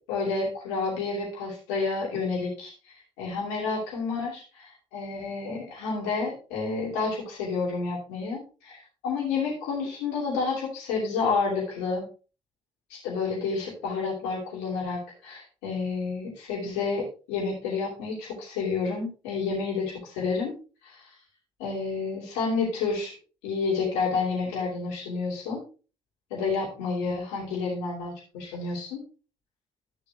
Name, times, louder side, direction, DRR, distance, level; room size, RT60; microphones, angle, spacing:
voice 1, 0.1-2.7 3.2-12.1 12.9-20.5 20.8-21.1 21.6-23.1 23.4-25.6 26.3-29.0, left 4 dB, 85° left, -5 dB, 2.8 m, -30 dB
13.0 x 6.9 x 2.4 m, 0.34 s
hypercardioid pair, 50°, 15 cm